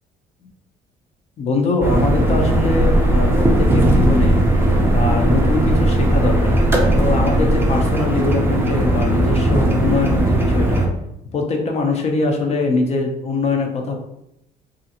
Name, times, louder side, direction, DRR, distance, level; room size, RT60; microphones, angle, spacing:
voice 1, 1.4-4.4 4.9-6.6 6.9-10.8 11.3-13.9, left 3 dB, 40° left, 2 dB, 0.6 m, -22 dB
Car Ambiance Edited, 1.8-10.9, right 1 dB, 15° right, 0.5 m, -18 dB
Blanche Uphill, 2.4-7.7, right 1 dB, 85° left, 1.4 m, -22 dB
2.5 x 2.4 x 2.8 m, 0.82 s
cardioid pair, 110°, 17 cm